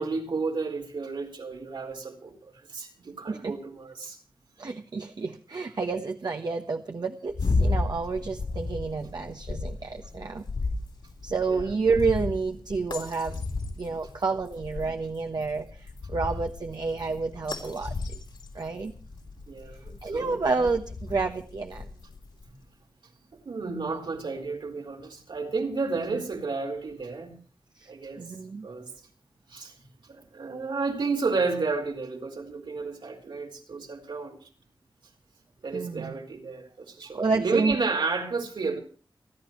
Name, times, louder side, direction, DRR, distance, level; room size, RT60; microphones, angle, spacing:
voice 1, 0.0-4.2 11.5-11.7 19.5-20.4 22.5-22.6 23.4-27.3 27.9-28.2 28.6-28.8 29.5-29.8 30.0-34.5 35.6-38.8, right 4 dB, 80° right, 1 dB, 4.3 m, -32 dB
voice 2, 4.6-10.4 11.2-13.4 13.8-17.9 18.5-18.9 20.0-21.9 27.8-27.9 28.2-28.7 35.7-36.1 37.1-37.8, right 4 dB, 60° right, 4 dB, 1.1 m, -29 dB
sound 1, 7.3-22.5, left 3 dB, 75° left, 3.5 m, -34 dB
29.5 x 11.5 x 3.1 m, 0.39 s
wide cardioid pair, 95°, 8 cm